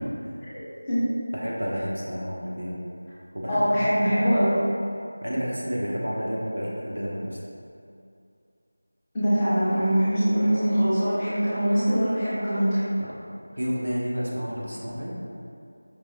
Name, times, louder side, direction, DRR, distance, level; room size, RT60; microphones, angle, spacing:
voice 1, 0.5-1.1 3.5-4.6 9.1-12.8, equal, 10° left, -13 dB, 0.8 m, -23 dB
voice 2, 1.3-2.8 3.3-3.7 5.2-7.4 13.0-13.1 13.5-15.1, equal, 80° right, -5 dB, 0.9 m, -30 dB
5.1 x 3.1 x 2.4 m, 2.5 s
figure-of-eight pair, 175°, 0 cm